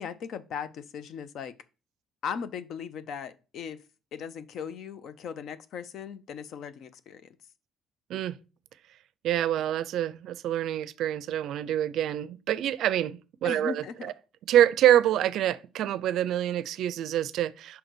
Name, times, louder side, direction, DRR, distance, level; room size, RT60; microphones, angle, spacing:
voice 1, 0.0-1.5 2.2-3.8 4.1-7.4 13.4-14.1, left 7 dB, 55° left, 0.6 m, -38 dB
voice 2, 9.2-14.1 14.5-17.8, right 11 dB, 65° right, 0.4 m, -26 dB
5.6 x 3.9 x 6.1 m
cardioid pair, 140°, 0 cm